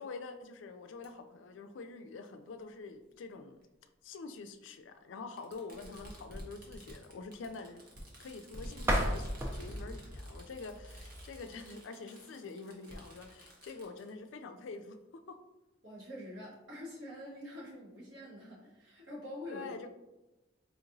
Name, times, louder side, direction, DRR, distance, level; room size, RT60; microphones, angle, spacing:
voice 1, 0.0-3.6 4.0-7.8 8.2-15.0 15.3-15.4 19.5-19.9, left 4 dB, 75° left, 8 dB, 0.4 m, -46 dB
Fireworks, 1.0-1.1 2.3-2.4 3.6-3.7 5.4-14.1, equal, 45° right, 0.9 m, -49 dB
sound 1, 8.8-11.6, equal, 10° right, 0.5 m, -35 dB
voice 2, 15.8-19.7, left 1 dB, 70° right, -6 dB, 1.5 m, -46 dB
4.4 x 2.8 x 2.6 m, 1.0 s
head